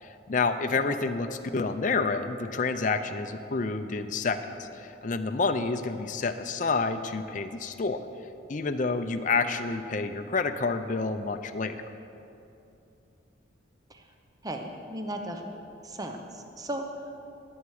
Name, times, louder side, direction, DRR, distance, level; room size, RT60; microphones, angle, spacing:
voice 1, 0.0-8.0 8.5-11.8, left 4 dB, 40° left, 7 dB, 0.5 m, -29 dB
voice 2, 14.4-16.8, right 1 dB, 20° right, 4 dB, 0.8 m, -36 dB
19.5 x 8.0 x 4.8 m, 2.8 s
head